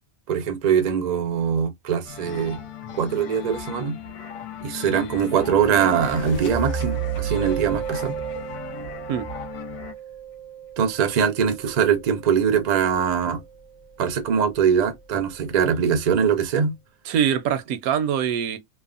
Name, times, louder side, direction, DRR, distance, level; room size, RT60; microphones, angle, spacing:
voice 1, 0.3-2.6 3.0-4.0 4.6-8.1 10.8-13.4 14.0-16.7, right 7 dB, 60° right, 0.4 m, -22 dB
sound 1, 2.0-9.9, left 6 dB, 70° left, 1.1 m, -37 dB
sound 2, 3.9-9.6, right 6 dB, 90° left, 1.3 m, -34 dB
Mallet percussion, 5.6-15.2, right 9 dB, 45° left, 0.6 m, -37 dB
voice 2, 17.0-18.6, right 8 dB, 80° right, 1.0 m, -23 dB
3.3 x 2.0 x 2.4 m
omnidirectional pair, 1.5 m